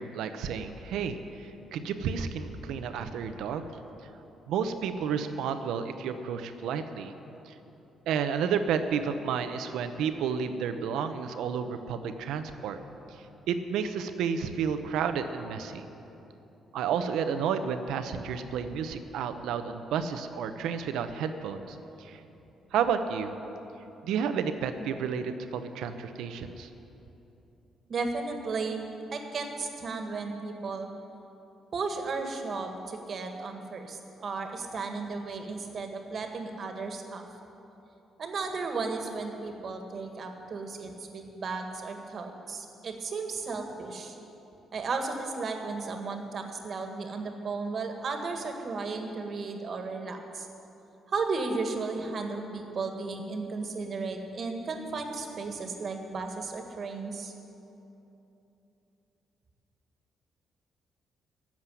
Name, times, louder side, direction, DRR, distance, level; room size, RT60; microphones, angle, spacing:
voice 1, 0.0-3.7 4.5-7.1 7.5-7.6 8.1-12.8 13.1-15.9 16.7-22.2 22.7-23.3 24.0-26.7, right 7 dB, 85° right, 9 dB, 0.8 m, -31 dB
voice 2, 27.9-28.8 29.1-30.9 31.7-37.2 38.2-44.1 44.7-50.5 51.1-57.3, right 4 dB, 50° right, 5 dB, 1.7 m, -34 dB
13.5 x 7.5 x 9.8 m, 3.0 s
cardioid pair, 90°, 0 cm